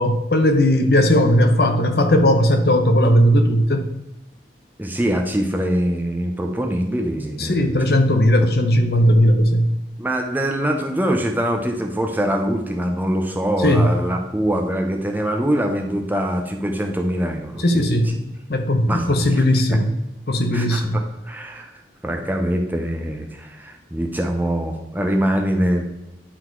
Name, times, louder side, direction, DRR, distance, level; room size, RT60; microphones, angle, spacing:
voice 1, 0.0-3.8 7.4-9.7 13.6-13.9 17.6-18.2 18.5-19.9 20.3-21.0, equal, 55° left, 6 dB, 0.8 m, -17 dB
voice 2, 4.8-7.8 10.0-18.2 18.8-19.8 20.5-25.8, equal, 10° right, 3 dB, 0.7 m, -24 dB
10.0 x 4.0 x 4.6 m, 0.95 s
head